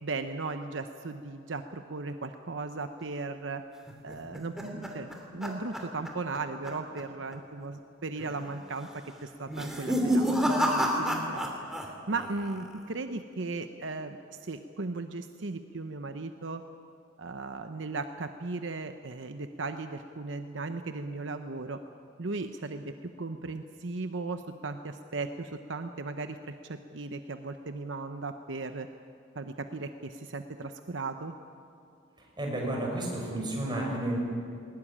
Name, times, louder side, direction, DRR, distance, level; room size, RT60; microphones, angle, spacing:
voice 1, 0.0-3.6 4.0-11.5 11.8-16.6 17.2-21.8 22.2-28.9 29.3-31.3, right 3 dB, 70° right, 8 dB, 0.9 m, -37 dB
sound 1, 3.9-6.4 6.6-7.0 7.3-7.4 8.2-8.6 9.4-11.9 12.1-12.7, equal, 5° right, 2.7 m, -29 dB
voice 2, 32.4-34.2, right 1 dB, 25° right, -1 dB, 5.8 m, -31 dB
20.5 x 19.0 x 10.0 m, 2.4 s
head